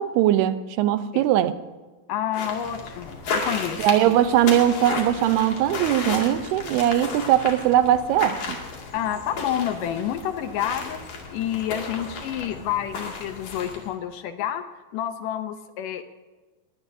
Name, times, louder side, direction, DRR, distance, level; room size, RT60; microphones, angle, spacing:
voice 1, 0.0-1.6 3.8-8.6, right 11 dB, 90° right, 12 dB, 2.8 m, -20 dB
voice 2, 2.1-3.9 8.9-11.0 11.3-14.6 14.9-16.0, left 10 dB, 75° left, 9 dB, 2.0 m, -29 dB
sound 1, 2.3-13.9, left 4 dB, 50° left, 3.5 m, -33 dB
22.5 x 18.0 x 2.7 m, 1.3 s
omnidirectional pair, 4.5 m